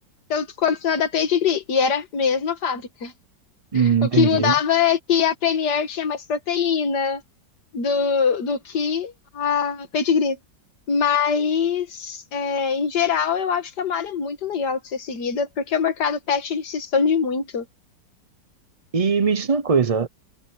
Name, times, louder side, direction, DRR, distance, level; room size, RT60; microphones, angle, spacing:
voice 1, 0.3-3.1 3.7-7.2 7.7-10.4 10.9-17.7, left 6 dB, 60° left, 2.2 m, -23 dB
voice 2, 3.7-4.5 18.9-20.1, right 6 dB, 60° right, 0.3 m, -20 dB
omnidirectional pair, 2.0 m